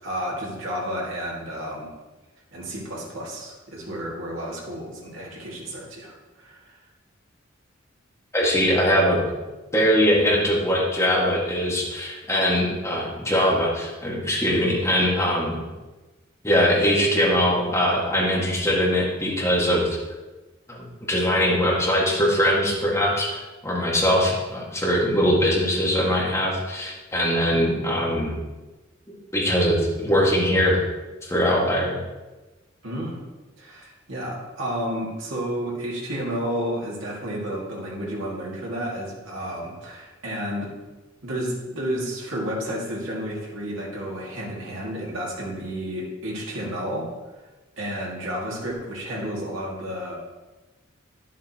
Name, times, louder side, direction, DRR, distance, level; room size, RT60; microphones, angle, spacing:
voice 1, 0.0-1.9 2.5-6.9 14.5-14.7 24.1-24.2 32.8-33.2 33.6-40.7 41.2-47.1 47.8-50.1, equal, 70° right, -4 dB, 2.2 m, -31 dB
voice 2, 8.3-9.2 9.7-15.6 16.4-20.0 20.7-28.3 29.3-30.8 31.2-31.9, equal, 15° left, -4 dB, 1.8 m, -21 dB
10.5 x 7.3 x 2.9 m, 1.2 s
head